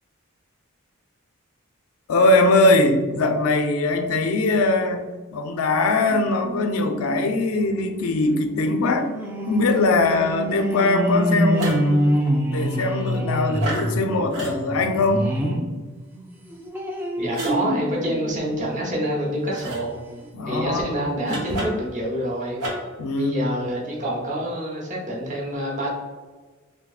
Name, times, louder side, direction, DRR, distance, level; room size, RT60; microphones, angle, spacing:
voice 1, 2.1-5.0 5.3-9.1 9.5-12.1 12.5-15.3 20.3-21.1 23.0-23.3, left 2 dB, 90° left, 6 dB, 0.4 m, -21 dB
sound 1, 6.1-15.7 16.1-19.2 19.7-19.8 20.1-20.2, equal, 10° right, 0.4 m, -27 dB
sound 2, 11.5-11.9 13.6-13.9 14.3-14.6 17.3-17.6 19.5-19.8 21.2-21.9 22.6-23.0, right 1 dB, 80° right, 1.0 m, -30 dB
voice 2, 17.2-20.0 20.5-22.6 23.1-25.9, right 1 dB, 35° right, -2 dB, 0.8 m, -27 dB
3.6 x 2.6 x 2.3 m, 1.3 s
head